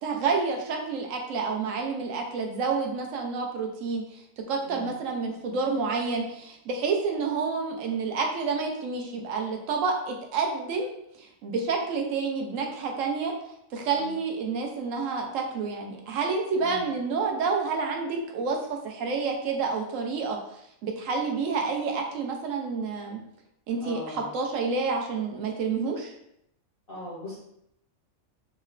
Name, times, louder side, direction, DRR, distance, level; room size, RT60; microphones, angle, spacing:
voice 1, 0.0-4.1 4.5-10.9 11.2-13.3 13.7-20.4 20.8-23.2 23.7-26.1, right 4 dB, 70° right, 2 dB, 0.9 m, -29 dB
voice 2, 23.8-24.2 26.9-27.4, left 2 dB, 55° left, -5 dB, 0.7 m, -39 dB
3.7 x 2.1 x 2.4 m, 0.77 s
omnidirectional pair, 1.5 m